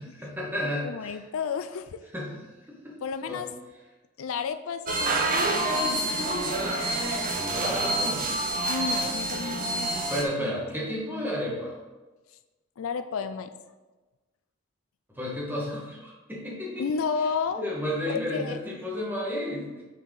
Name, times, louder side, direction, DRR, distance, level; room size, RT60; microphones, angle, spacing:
voice 1, 0.0-1.2 2.1-2.4 2.8-2.9 3.3-3.4 7.3-8.3 9.9-11.7 15.1-16.8 17.6-19.8, left 1 dB, 10° right, -5 dB, 1.6 m, -32 dB
voice 2, 0.6-2.0 3.0-3.5 4.2-6.2 8.7-9.9 10.4-10.6 10.9-11.2 12.8-13.5 16.8-17.6 18.0-18.6, left 5 dB, 90° left, 10 dB, 0.4 m, -32 dB
sound 1, 4.9-10.2, right 1 dB, 45° right, 0.9 m, -27 dB
6.8 x 4.6 x 3.9 m, 1.2 s
head